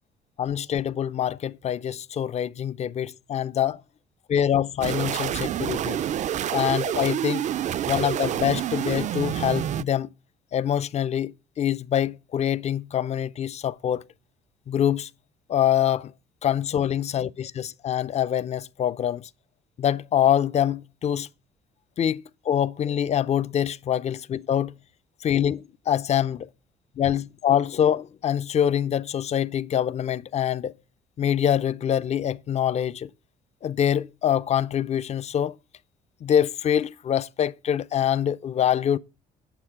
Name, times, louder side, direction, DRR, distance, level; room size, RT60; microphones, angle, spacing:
voice 1, 0.4-3.8 4.3-6.0 6.5-7.5 7.9-10.1 10.5-14.0 14.7-15.1 15.5-16.1 16.4-19.3 19.8-21.3 22.0-24.8 25.2-26.5 27.0-30.7 31.2-33.1 33.6-35.6 36.2-39.0, left 9 dB, 40° left, 0.6 m, -25 dB
sound 1, 4.8-9.8, right 10 dB, 45° right, 0.4 m, -28 dB
8.9 x 7.2 x 5.9 m
cardioid pair, 110°, 17 cm